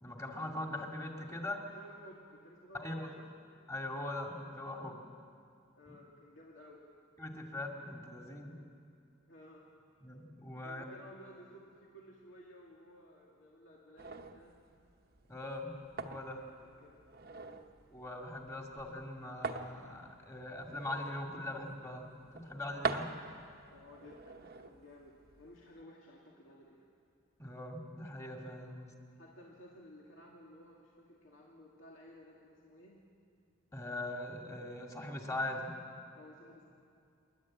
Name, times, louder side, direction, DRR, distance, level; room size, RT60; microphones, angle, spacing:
voice 1, 0.0-1.6 2.7-3.1 3.7-5.0 7.2-8.6 10.0-10.8 15.3-16.4 17.9-22.1 22.3-23.1 27.4-28.9 33.7-35.8, left 1 dB, 15° left, 1 dB, 2.2 m, -41 dB
voice 2, 1.7-3.3 5.8-6.8 9.3-9.7 10.6-14.6 16.6-17.0 17.3-17.6 23.7-26.9 29.2-33.0 36.1-36.6, equal, 75° left, -3 dB, 2.4 m, -56 dB
sound 1, 14.0-25.8, right 4 dB, 50° right, 1.0 m, -45 dB
28.0 x 11.5 x 8.7 m, 2.5 s
head